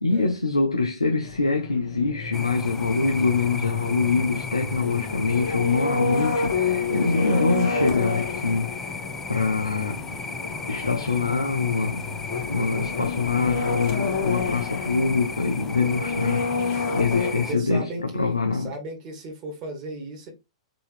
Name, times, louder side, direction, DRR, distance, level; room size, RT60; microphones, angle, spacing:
voice 1, 0.0-8.8 9.3-10.0 10.7-12.0 12.5-17.9 18.1-18.7, left 4 dB, 80° left, 0.6 m, -24 dB
sound 1, 1.2-17.3, left 4 dB, 50° left, 1.5 m, -29 dB
sound 2, 2.3-17.5, left 4 dB, 10° left, 0.4 m, -35 dB
voice 2, 7.2-7.6 17.2-20.3, right 1 dB, 30° right, 1.4 m, -35 dB
3.9 x 2.8 x 3.1 m
figure-of-eight pair, 105°, 3 cm